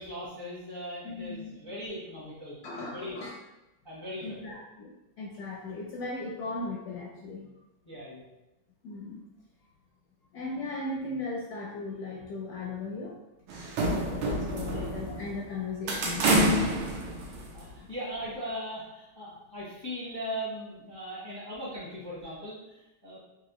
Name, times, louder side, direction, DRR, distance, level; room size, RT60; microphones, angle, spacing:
voice 1, 0.0-3.2 3.8-4.6 7.8-8.3 14.5-14.9 16.9-23.2, equal, 30° left, -8 dB, 0.4 m, -39 dB
voice 2, 1.0-1.5 2.6-3.3 4.2-4.9 5.2-7.5 8.8-9.2 10.3-13.2 13.8-16.4 17.7-17.9, left 3 dB, 75° left, -3 dB, 0.9 m, -37 dB
sound 1, 13.5-15.4 15.9-17.8, right 1 dB, 85° right, 1.5 m, -27 dB
4.0 x 2.4 x 3.0 m, 0.96 s
omnidirectional pair, 2.2 m